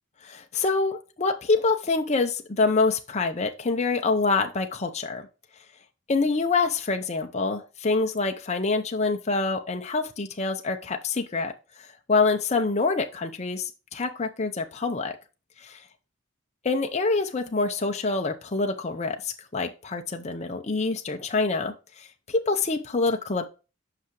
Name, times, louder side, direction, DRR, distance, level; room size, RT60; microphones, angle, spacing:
voice 1, 0.3-5.3 6.1-11.5 12.1-15.1 15.6-15.8 16.7-23.5, left 3 dB, 35° left, 4 dB, 0.7 m, -26 dB
8.0 x 5.8 x 3.1 m, 0.31 s
head